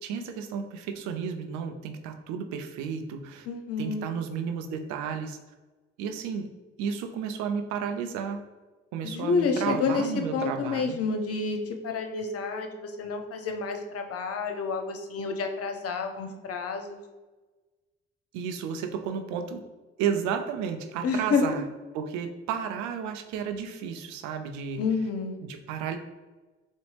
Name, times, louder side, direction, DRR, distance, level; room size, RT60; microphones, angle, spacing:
voice 1, 0.0-3.5 3.8-5.4 6.0-6.5 6.8-8.4 8.9-11.0 18.3-19.6 20.0-21.6 21.9-24.8 25.4-26.0, right 7 dB, 75° right, 6 dB, 0.5 m, -32 dB
voice 2, 3.5-4.0 9.0-10.1 10.3-11.6 11.8-17.0 21.0-21.4 24.8-25.4, left 4 dB, 55° left, 5 dB, 0.6 m, -29 dB
3.8 x 2.0 x 3.2 m, 1.2 s
hypercardioid pair, 45°, 29 cm